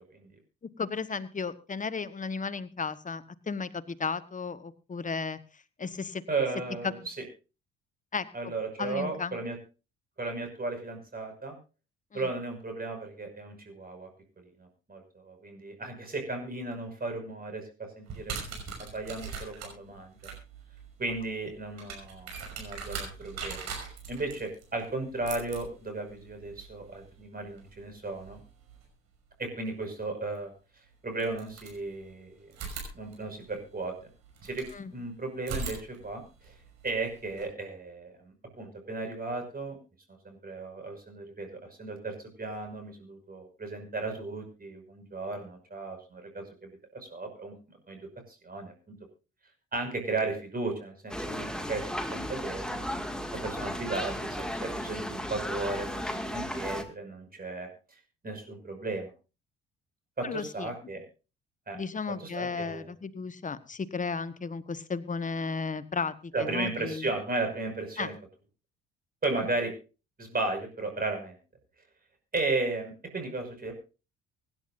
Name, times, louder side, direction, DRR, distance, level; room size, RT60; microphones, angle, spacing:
voice 1, 0.8-6.2 6.8-6.9 8.1-8.2 8.8-9.4 12.1-12.2 34.7-34.9 60.2-60.7 61.7-67.1 68.0-68.1, left 4 dB, 25° left, 15 dB, 1.2 m, -34 dB
voice 2, 6.3-7.1 8.3-9.6 10.2-11.5 12.1-14.1 14.6-18.3 18.8-20.2 21.0-23.7 24.1-28.4 29.4-30.5 31.0-32.5 32.9-33.9 34.4-36.6 36.8-39.8 40.1-48.7 49.7-52.8 53.3-59.1 60.2-61.0 61.7-61.8 62.1-62.9 66.3-68.1 69.2-69.7 70.2-71.4 72.3-73.7, right 3 dB, 30° right, 5 dB, 5.8 m, -35 dB
sound 1, 18.1-28.9 30.3-30.4 31.1-32.1 32.5-34.8 35.4-37.4, right 5 dB, 55° right, 5.9 m, -42 dB
sound 2, 51.1-56.8, equal, ahead, 2.1 m, -35 dB
24.5 x 11.0 x 2.6 m, 0.33 s
figure-of-eight pair, 45°, 31 cm